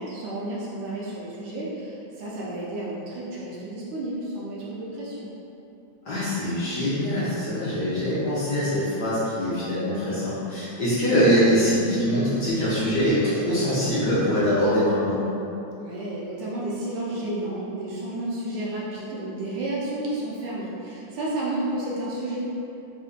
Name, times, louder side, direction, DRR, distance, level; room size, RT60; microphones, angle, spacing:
voice 1, 0.0-5.3 15.8-22.4, right 1 dB, 75° right, -6 dB, 1.3 m, -31 dB
voice 2, 6.0-15.2, equal, 65° left, -11 dB, 1.2 m, -23 dB
4.3 x 2.5 x 2.4 m, 2.8 s
omnidirectional pair, 2.4 m